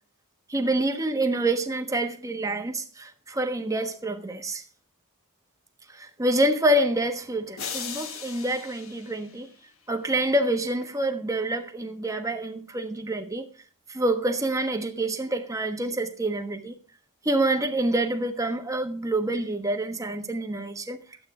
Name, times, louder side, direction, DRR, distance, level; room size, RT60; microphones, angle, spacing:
voice 1, 0.5-4.6 5.9-9.5 9.9-13.5 13.9-16.7 17.2-21.0, right 1 dB, 15° right, 1.2 m, -27 dB
sound 1, 7.6-9.9, left 7 dB, 65° left, 1.5 m, -38 dB
12.0 x 8.5 x 4.8 m
head